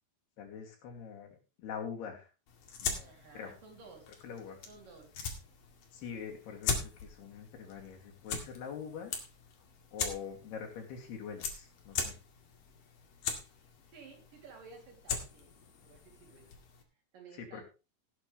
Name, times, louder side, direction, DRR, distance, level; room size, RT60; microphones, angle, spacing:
voice 1, 0.4-1.3 1.6-2.3 2.8-3.5 4.2-4.6 5.9-9.1 9.9-12.2 17.3-17.6, left 7 dB, 85° left, 2 dB, 4.7 m, -44 dB
sound 1, 2.5-16.8, left 6 dB, 60° left, 3.7 m, -41 dB
voice 2, 3.0-4.1 4.7-5.1 13.9-16.5 17.1-17.6, right 4 dB, 60° right, 2 dB, 4.6 m, -54 dB
17.5 x 9.0 x 3.4 m, 0.30 s
omnidirectional pair, 4.5 m